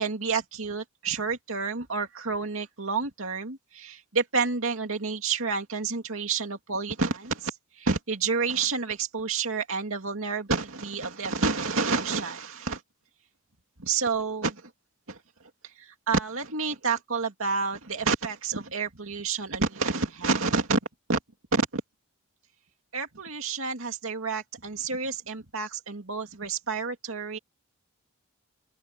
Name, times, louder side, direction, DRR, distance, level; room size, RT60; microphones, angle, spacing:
voice 1, 0.0-12.8 13.8-14.6 15.1-15.2 15.8-20.8 21.1-21.2 21.5-21.8 22.9-27.4, right 4 dB, 65° right, 2.6 m, -29 dB
open air
head